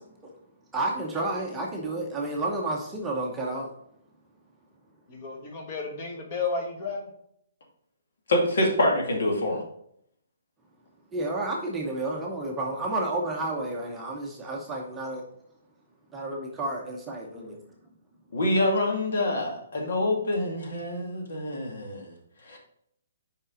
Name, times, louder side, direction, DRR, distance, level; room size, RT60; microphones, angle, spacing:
voice 1, 0.7-3.7 11.1-15.2 16.1-17.6, right 2 dB, 10° right, -2 dB, 0.8 m, -31 dB
voice 2, 5.1-7.1, left 4 dB, 30° left, 1 dB, 1.5 m, -32 dB
voice 3, 8.3-9.6 18.3-22.1 22.5-22.6, left 1 dB, 65° left, 1 dB, 2.1 m, -26 dB
5.4 x 5.0 x 4.9 m, 0.70 s
hypercardioid pair, 170°, 0 cm